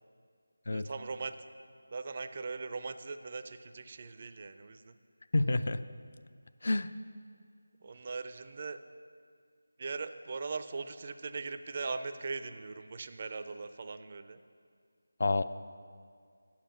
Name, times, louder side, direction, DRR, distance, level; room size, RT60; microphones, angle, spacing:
voice 1, 0.7-1.4 1.9-5.0 7.8-8.8 9.8-14.4, right 4 dB, 35° right, 10 dB, 0.4 m, -40 dB
voice 2, 5.3-5.8 6.6-6.9 15.2-15.4, left 2 dB, 50° left, 12 dB, 0.3 m, -28 dB
8.6 x 7.3 x 5.8 m, 2.1 s
figure-of-eight pair, 160°, 0 cm